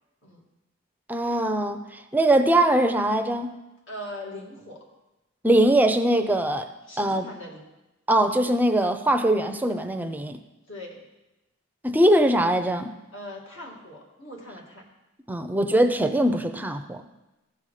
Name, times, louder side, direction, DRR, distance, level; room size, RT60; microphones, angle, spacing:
voice 1, 1.1-1.8 2.1-3.5 5.4-6.7 7.0-7.3 8.1-10.4 11.8-12.9 15.3-17.0, right 1 dB, 10° right, 7 dB, 0.5 m, -21 dB
voice 2, 3.9-4.9 6.9-7.6 10.7-11.0 13.1-14.8, left 1 dB, 65° left, -1 dB, 2.2 m, -40 dB
15.0 x 5.6 x 4.9 m, 1.0 s
head